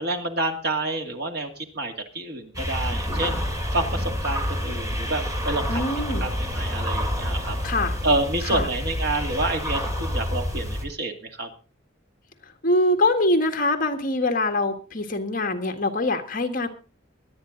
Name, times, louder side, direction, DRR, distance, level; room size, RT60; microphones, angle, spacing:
voice 1, 0.0-3.4 3.7-5.9 6.2-7.6 8.0-11.5, right 2 dB, 55° right, 4 dB, 2.3 m, -28 dB
sound 1, 2.5-10.8, equal, 15° right, 2.5 m, -28 dB
voice 2, 5.7-6.3 7.6-8.0 8.4-8.7 12.6-16.7, left 2 dB, 45° left, 6 dB, 1.7 m, -23 dB
23.0 x 9.1 x 3.9 m, 0.36 s
head